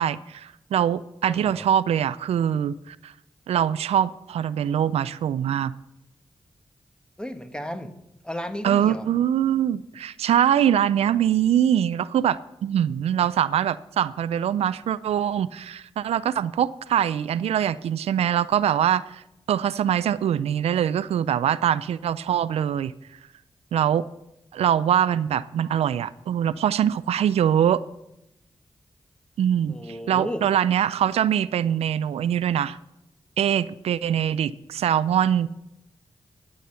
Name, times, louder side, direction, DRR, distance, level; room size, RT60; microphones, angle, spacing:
voice 1, 0.0-3.1 3.5-5.7 8.6-19.2 19.5-22.9 23.7-24.0 24.5-27.8 29.4-29.7 30.1-32.8 33.4-35.5, right 9 dB, 90° right, 0.4 m, -23 dB
voice 2, 1.2-1.7 7.2-7.9 8.2-9.1 29.7-30.4, equal, 10° left, 1.4 m, -33 dB
12.0 x 8.4 x 5.6 m
cardioid pair, 45°, 10 cm